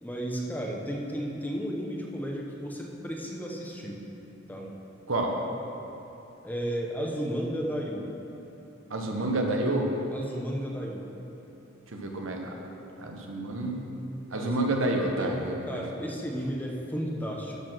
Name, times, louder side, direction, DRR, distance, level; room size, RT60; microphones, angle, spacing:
voice 1, 0.0-4.0 4.5-4.7 6.4-8.1 10.1-11.0 14.3-17.6, equal, 10° left, -1 dB, 0.9 m, -34 dB
voice 2, 8.9-9.9 11.9-12.5 13.0-13.8 14.3-15.8, right 1 dB, 70° right, 1 dB, 1.1 m, -29 dB
12.5 x 4.4 x 6.2 m, 3.0 s
head